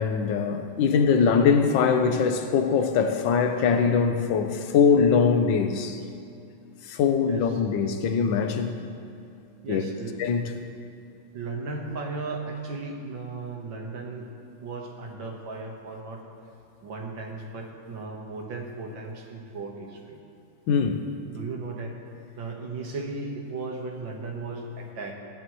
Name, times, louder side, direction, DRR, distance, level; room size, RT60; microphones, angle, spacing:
voice 1, 0.0-6.0 6.8-8.7 9.7-9.8 10.2-10.5 20.7-21.0, left 6 dB, 70° left, 6 dB, 1.5 m, -22 dB
voice 2, 9.6-10.2 11.3-14.3 14.6-16.3 16.8-20.2 21.3-22.0 22.4-25.1, right 3 dB, 70° right, 1 dB, 2.1 m, -36 dB
18.0 x 10.5 x 3.1 m, 2.5 s
omnidirectional pair, 2.2 m